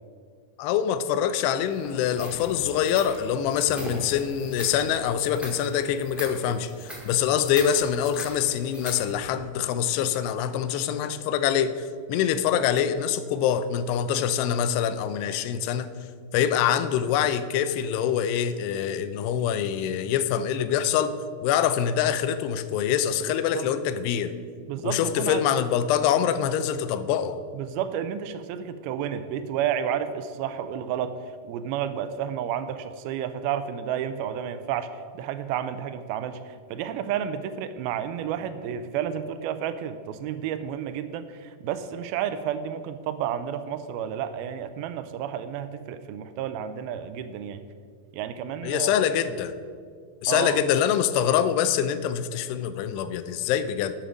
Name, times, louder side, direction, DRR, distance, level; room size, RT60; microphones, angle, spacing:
voice 1, 0.6-11.7 12.1-15.9 16.3-21.1 21.4-24.3 24.8-27.4 48.6-49.6 50.2-53.9, left 9 dB, 90° left, 12 dB, 2.7 m, -25 dB
sound 1, 1.7-9.2, equal, ahead, 0.8 m, -41 dB
voice 2, 23.2-23.7 24.7-25.4 27.5-31.2 31.4-34.9 35.2-47.6 48.1-49.0 50.3-50.6, right 9 dB, 85° right, 11 dB, 2.2 m, -31 dB
12.0 x 7.5 x 5.1 m, 2.1 s
omnidirectional pair, 4.7 m